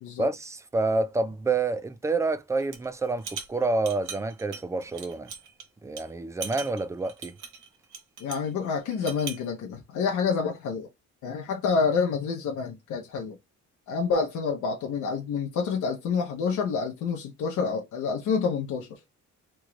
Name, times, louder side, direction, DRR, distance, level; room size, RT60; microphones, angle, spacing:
voice 1, 0.2-5.3 5.8-7.4, right 3 dB, 10° right, 0.3 m, -28 dB
sound 1, 2.6-2.9 3.2-5.6 6.0-6.1 6.4-8.5 8.9-9.5, right 7 dB, 85° right, 0.9 m, -40 dB
voice 2, 8.2-10.9 11.2-13.4 13.9-18.9, left 5 dB, 75° left, 0.8 m, -28 dB
3.0 x 2.4 x 3.1 m
cardioid pair, 90°, 30 cm